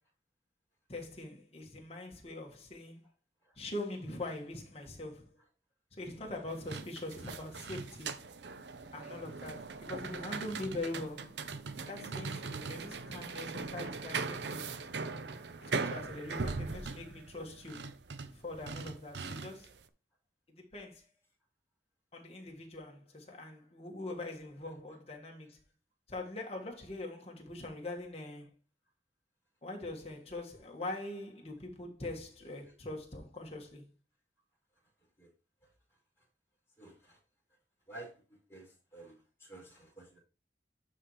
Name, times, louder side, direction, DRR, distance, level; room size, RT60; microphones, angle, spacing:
voice 1, 0.9-3.1 3.6-5.3 5.9-8.2 8.9-11.4 11.9-14.7 15.6-17.9 18.2-19.7 20.5-21.0 22.1-25.6 26.1-28.5 29.6-33.9, left 2 dB, 35° left, 1.6 m, -43 dB
sound 1, 6.5-19.8, right 4 dB, 70° right, 0.6 m, -40 dB
voice 2, 36.8-37.2 37.9-40.2, right 2 dB, 15° left, 4.5 m, -52 dB
11.5 x 4.2 x 3.1 m
head